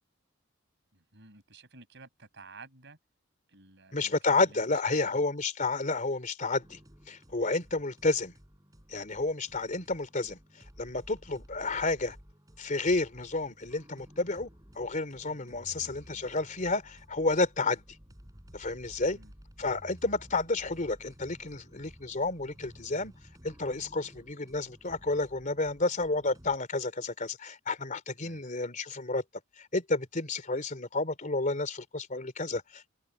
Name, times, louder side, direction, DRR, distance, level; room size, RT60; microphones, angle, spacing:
voice 1, 0.9-3.0 3.5-5.3 7.7-7.8 19.0-19.3 28.2-28.4, right 3 dB, 60° right, 6.3 m, -53 dB
voice 2, 3.9-6.8 7.1-8.3 8.9-10.4 10.8-12.2 12.6-14.5 14.7-17.8 18.5-19.2 19.6-23.1 23.4-29.2 29.6-32.9, left 3 dB, 40° left, 3.2 m, -31 dB
sound 1, 6.6-26.6, equal, 20° right, 6.1 m, -54 dB
head